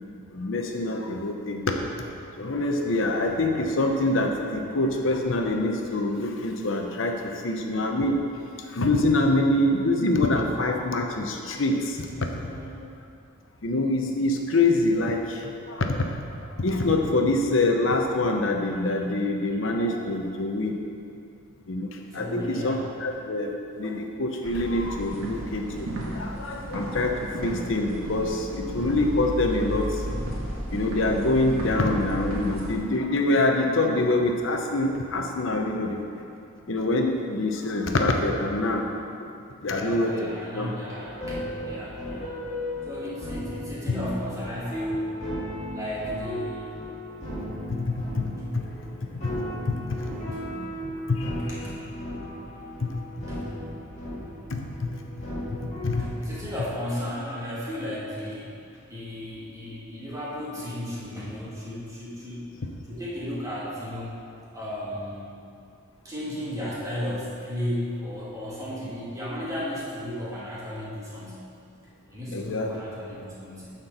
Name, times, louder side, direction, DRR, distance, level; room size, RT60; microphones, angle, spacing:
voice 1, 0.3-1.6 2.3-8.2 8.7-12.3 13.6-16.1 16.4-20.8 21.7-30.0 30.3-36.0 36.7-38.9 39.6-40.7 47.8-50.1 50.6-51.6 52.8-52.9 54.5-55.0 55.8-56.0 72.3-72.7, left 2 dB, 65° left, 3 dB, 0.7 m, -25 dB
voice 2, 12.1-12.7 22.1-22.9 23.8-23.9 31.6-31.8 39.7-42.3 42.9-45.1 45.7-46.7 50.1-50.4 51.5-51.7 53.3-53.4 56.2-58.5 58.9-62.5 62.9-64.2 64.5-65.4 66.0-71.4 72.1-73.7, left 1 dB, 15° right, -8 dB, 2.0 m, -34 dB
sound 1, 24.4-32.7, equal, 85° right, 1.5 m, -34 dB
sound 2, 40.9-56.1, equal, 30° left, 2.1 m, -36 dB
9.7 x 4.5 x 6.7 m, 2.5 s
head